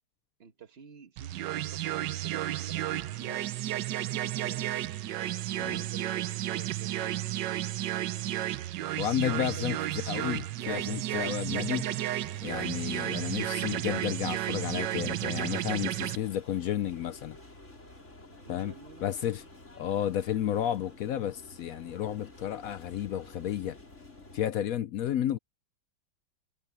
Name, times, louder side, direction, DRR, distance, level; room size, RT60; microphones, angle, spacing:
voice 1, 0.4-3.6 4.2-4.7 5.6-7.0 9.3-9.7 18.3-19.1, right 6 dB, 35° right, 1.4 m, -50 dB
sound 1, 1.2-16.2, right 14 dB, 70° right, 1.3 m, -32 dB
sound 2, 2.9-16.1, equal, 5° left, 6.2 m, -65 dB
voice 2, 9.0-11.9 12.4-17.4 18.5-18.7 19.0-19.4 19.8-23.8 24.3-25.4, left 11 dB, 75° left, 0.8 m, -32 dB
sound 3, 11.5-24.4, left 2 dB, 40° left, 5.4 m, -52 dB
omnidirectional pair, 2.0 m